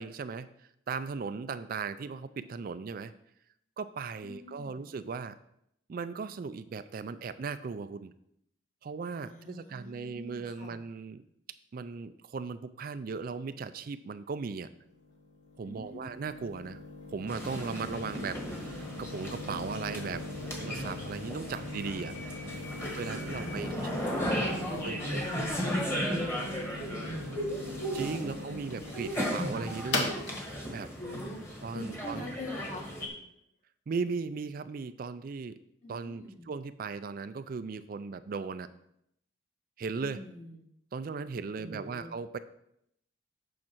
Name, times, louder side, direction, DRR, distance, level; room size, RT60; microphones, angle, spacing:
voice 1, 0.0-3.1 3.8-5.4 5.9-8.1 8.8-11.2 11.7-14.7 15.6-16.8 17.1-20.2 20.6-22.1 23.0-23.7 24.7-25.5 27.9-30.2 30.7-30.9 31.6-32.3 33.9-35.6 35.9-38.7 39.8-40.2 40.9-42.4, right 5 dB, 45° right, 12 dB, 0.3 m, -37 dB
voice 2, 4.2-4.9 9.2-10.8 15.6-16.1 22.6-27.0 28.2-29.0 31.0-32.9 35.8-36.5 40.0-40.6 41.6-42.1, left 1 dB, 40° left, 1 dB, 1.7 m, -43 dB
sound 1, 14.8-32.5, left 2 dB, 60° left, 1.4 m, -41 dB
sound 2, 17.3-33.1, equal, 15° left, 1.5 m, -36 dB
8.6 x 5.8 x 4.5 m, 0.76 s
head